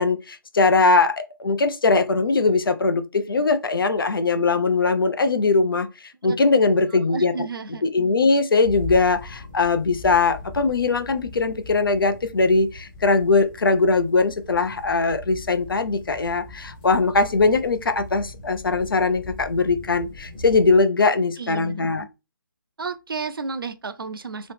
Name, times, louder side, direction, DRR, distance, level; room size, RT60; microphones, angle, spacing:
voice 1, 0.0-5.9 6.2-7.3 7.8-22.0, left 3 dB, 75° left, 0.6 m, -20 dB
voice 2, 6.9-7.8 21.4-22.1 22.8-24.5, right 4 dB, 80° right, 0.6 m, -32 dB
sound 1, 8.6-20.8, left 3 dB, 20° left, 0.8 m, -41 dB
3.0 x 2.9 x 3.3 m
figure-of-eight pair, 160°, 12 cm